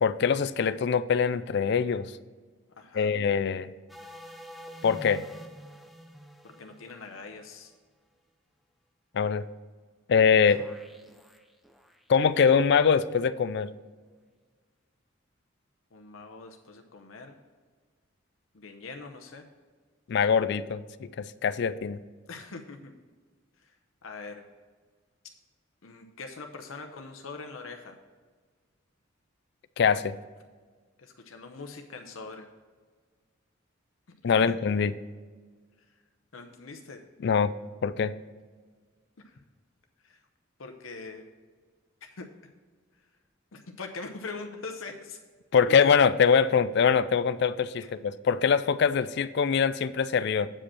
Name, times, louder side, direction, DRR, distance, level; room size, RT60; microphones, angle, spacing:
voice 1, 0.0-2.1 2.9-3.7 4.8-5.2 9.1-9.4 10.1-10.6 12.1-13.7 20.1-22.0 29.8-30.1 34.2-34.9 37.2-37.5 37.8-38.1 45.5-50.5, left 6 dB, 55° left, 15 dB, 0.4 m, -23 dB
voice 2, 2.8-3.1 6.4-7.7 10.5-10.6 15.9-17.4 18.5-19.4 22.3-22.9 23.6-23.7 24.0-24.4 25.8-28.0 31.0-32.5 34.3-34.6 36.3-37.0 39.2-39.4 40.0-40.2 40.6-41.2 42.0-42.3 43.5-45.2 45.7-46.0 47.8-47.9, left 3 dB, 90° left, 5 dB, 0.8 m, -42 dB
sound 1, 3.9-7.7 10.5-12.0, equal, ahead, 0.6 m, -47 dB
8.6 x 5.0 x 6.2 m, 1.5 s
head